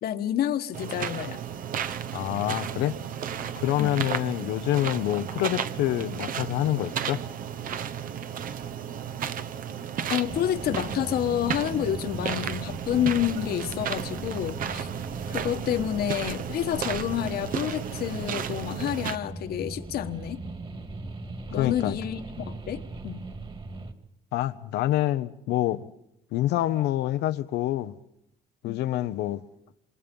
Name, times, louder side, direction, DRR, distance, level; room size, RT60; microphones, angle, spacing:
voice 1, 0.0-1.4 3.8-4.0 10.1-14.9 15.3-20.4 21.5-23.2 28.6-28.8, left 11 dB, 65° left, 1.5 m, -29 dB
sound 1, 0.7-19.2, right 8 dB, 55° right, 1.1 m, -34 dB
voice 2, 2.1-3.0 3.6-7.2 21.6-21.9 24.3-25.9 26.3-27.9 28.6-29.4, left 14 dB, 80° left, 0.9 m, -26 dB
sound 2, 10.2-23.9, right 2 dB, 30° right, 2.6 m, -39 dB
27.5 x 27.0 x 5.5 m
cardioid pair, 110°, 17 cm